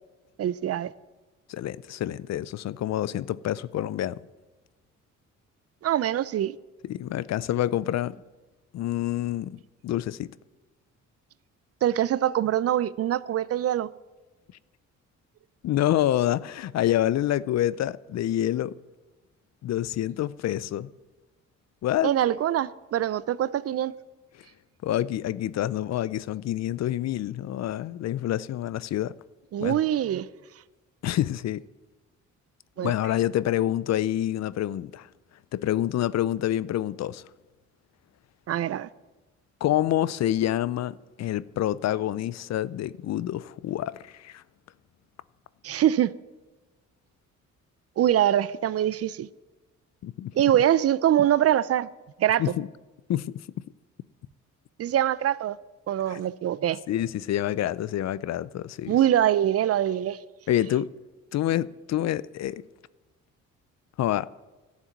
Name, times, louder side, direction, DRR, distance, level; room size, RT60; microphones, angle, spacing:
voice 1, 0.4-0.9 5.8-6.6 11.8-13.9 22.0-23.9 29.5-30.3 32.8-32.9 38.5-38.9 45.6-46.1 48.0-49.3 50.4-51.9 52.2-52.4 54.8-55.6 55.9-56.8 58.9-60.2, right 11 dB, 50° right, 0.5 m, -23 dB
voice 2, 1.5-4.2 6.8-8.1 8.7-10.3 15.6-18.7 19.6-20.9 21.8-22.1 24.8-29.1 29.6-29.8 31.0-31.6 32.8-35.1 35.5-37.3 39.6-44.4 50.0-50.3 52.4-52.7 53.1-53.4 56.1-56.2 56.9-59.0 60.5-60.9 61.3-62.6 64.0-64.3, left 12 dB, 60° left, 0.5 m, -27 dB
12.5 x 7.3 x 9.2 m
cardioid pair, 90°, 30 cm